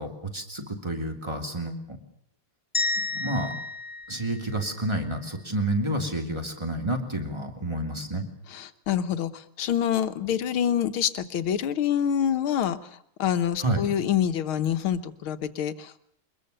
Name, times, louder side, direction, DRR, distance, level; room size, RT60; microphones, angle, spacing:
voice 1, 0.0-2.0 3.1-3.5 4.1-8.3 13.6-13.9, right 1 dB, 10° right, 4 dB, 2.9 m, -29 dB
sound 1, 2.7-5.0, left 3 dB, 10° left, 2.7 m, -31 dB
voice 2, 8.5-12.8 13.2-16.1, left 9 dB, 75° left, 10 dB, 1.9 m, -26 dB
23.5 x 21.5 x 6.7 m, 0.70 s
omnidirectional pair, 2.3 m